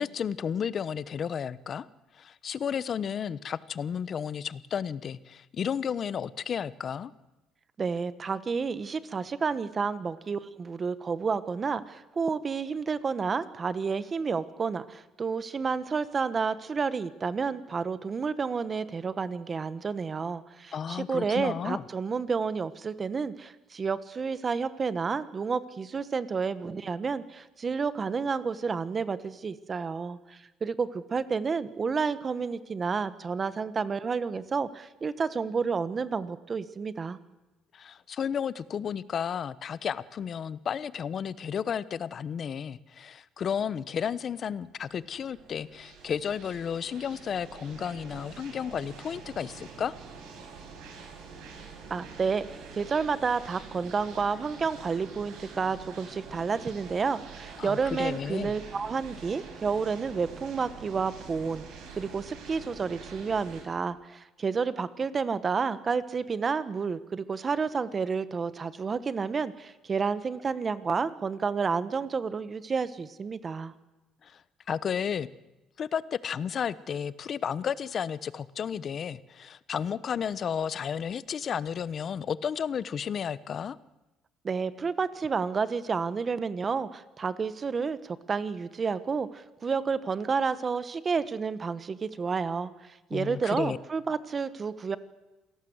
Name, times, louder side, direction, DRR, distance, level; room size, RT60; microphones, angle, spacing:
voice 1, 0.0-1.9 2.1-7.1 20.7-21.8 37.7-49.9 57.6-58.5 74.2-74.4 74.7-75.3 75.8-83.8 93.1-93.8, left 7 dB, 40° left, 18 dB, 0.9 m, -32 dB
voice 2, 7.8-37.2 51.9-61.6 62.0-73.7 84.4-95.0, right 5 dB, 30° right, 14 dB, 1.3 m, -30 dB
sound 1, 44.5-63.6, right 5 dB, 80° right, 7.9 m, -46 dB
27.5 x 18.0 x 8.0 m, 1.0 s
cardioid pair, 135°, 0 cm